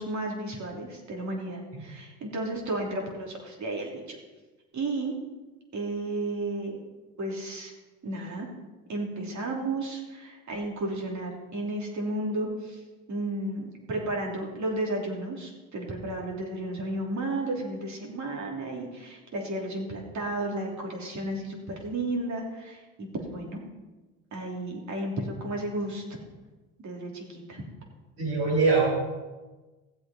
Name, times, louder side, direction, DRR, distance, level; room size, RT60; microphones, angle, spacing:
voice 1, 0.0-4.2 4.7-5.1 5.7-6.8 7.2-7.7 8.0-8.5 8.9-12.8 13.1-23.6 24.3-26.0 26.8-27.6, right 2 dB, 45° right, 0 dB, 3.2 m, -33 dB
voice 2, 28.2-28.9, right 4 dB, 70° right, -9 dB, 4.4 m, -23 dB
15.0 x 7.9 x 4.3 m, 1.2 s
supercardioid pair, 75°, 38 cm